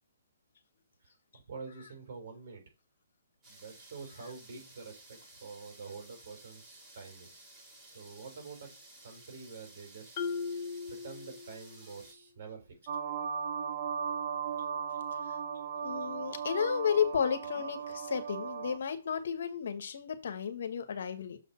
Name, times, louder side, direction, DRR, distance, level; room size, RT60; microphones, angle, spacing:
voice 1, 1.0-2.6 3.5-7.7 7.9-8.7 9.0-10.1 10.9-12.8, right 4 dB, 55° right, 3.8 m, -47 dB
sound 1, 3.4-12.1, right 2 dB, 15° right, 2.8 m, -55 dB
Marimba xylophone, 10.2-11.9, left 5 dB, 35° left, 1.2 m, -38 dB
sound 2, 12.9-18.8, right 6 dB, 40° right, 1.1 m, -37 dB
voice 2, 15.8-21.4, left 7 dB, 60° left, 1.3 m, -33 dB
6.8 x 4.1 x 5.8 m
hypercardioid pair, 145°, 0 cm